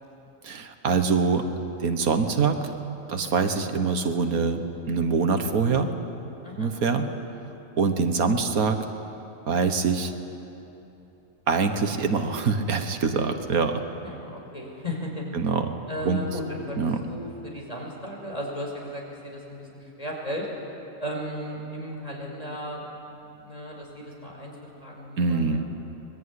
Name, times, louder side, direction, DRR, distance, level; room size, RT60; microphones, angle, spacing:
voice 1, 0.4-1.5 1.8-2.6 3.1-5.9 6.6-7.1 7.8-8.8 9.5-10.1 11.5-13.8 15.3-15.7 16.0-16.2 16.8-17.0 25.2-25.7, right 4 dB, 90° right, 7 dB, 1.8 m, -24 dB
voice 2, 14.0-15.2 15.9-20.5 21.0-22.8 23.4-25.6, equal, 25° left, -1 dB, 5.5 m, -35 dB
25.5 x 21.0 x 9.8 m, 2.9 s
omnidirectional pair, 1.5 m